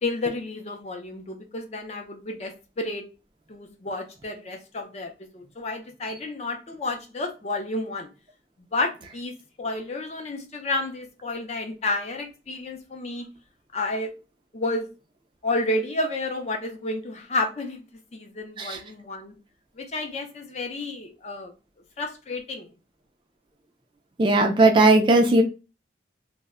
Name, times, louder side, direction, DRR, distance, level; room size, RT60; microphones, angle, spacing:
voice 1, 0.0-3.0 3.5-8.1 8.7-13.3 13.7-14.1 14.5-14.9 15.4-17.8 18.1-19.3 19.8-21.5 22.0-22.7, left 2 dB, 35° left, 0.5 m, -31 dB
voice 2, 24.2-25.4, right 2 dB, 25° right, 0.3 m, -17 dB
2.1 x 2.1 x 3.5 m
head